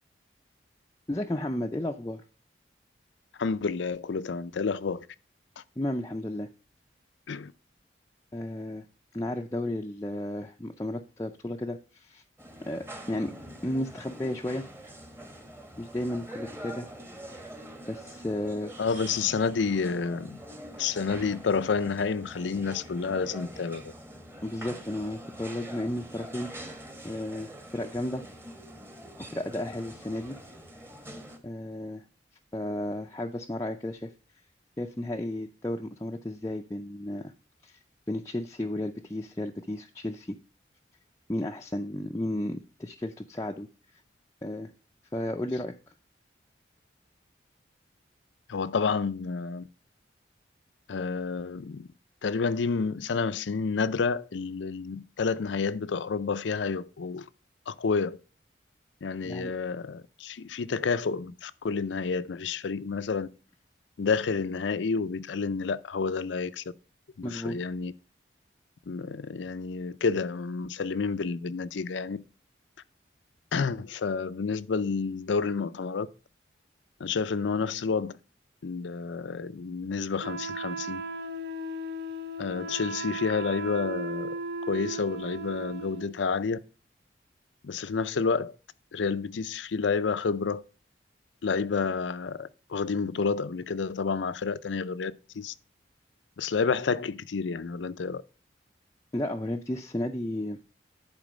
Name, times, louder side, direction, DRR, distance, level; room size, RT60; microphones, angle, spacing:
voice 1, 1.1-2.2 5.8-6.5 8.3-8.8 9.1-12.2 12.7-13.3 13.6-14.7 15.8-16.9 17.9-18.7 24.4-26.5 27.0-28.2 29.3-30.4 31.4-32.0 32.5-34.1 34.8-37.3 37.6-37.8 38.1-40.4 41.3-43.7 44.4-44.7 45.1-45.7 59.2-59.5 67.2-67.6 99.1-100.6, left 1 dB, 15° left, 0.4 m, -33 dB
voice 2, 3.4-5.1 7.3-7.5 18.8-20.4 20.8-23.9 48.5-49.7 50.9-51.9 52.2-57.3 57.7-58.2 59.0-63.3 64.0-66.6 67.2-67.9 68.9-72.2 73.5-76.1 77.0-78.1 78.6-81.0 82.4-84.3 84.7-86.6 87.6-88.5 88.9-90.6 91.4-95.5 96.4-98.2, left 5 dB, 80° left, 0.5 m, -29 dB
sound 1, 12.4-31.4, right 1 dB, 15° right, 1.0 m, -45 dB
Wind instrument woodwind instrument, 80.2-86.1, right 2 dB, 60° right, 0.6 m, -36 dB
10.5 x 4.5 x 5.1 m
head